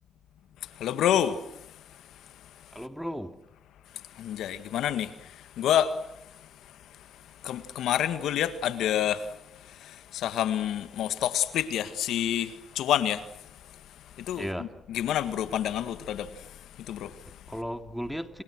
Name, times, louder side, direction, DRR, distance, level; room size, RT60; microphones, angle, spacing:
voice 1, 0.6-2.8 3.9-17.4, left 10 dB, 80° left, 1.8 m, -30 dB
voice 2, 2.7-3.4 14.4-14.7 17.2-18.4, equal, ahead, 2.8 m, -35 dB
30.0 x 27.5 x 6.3 m
supercardioid pair, 55°, 0 cm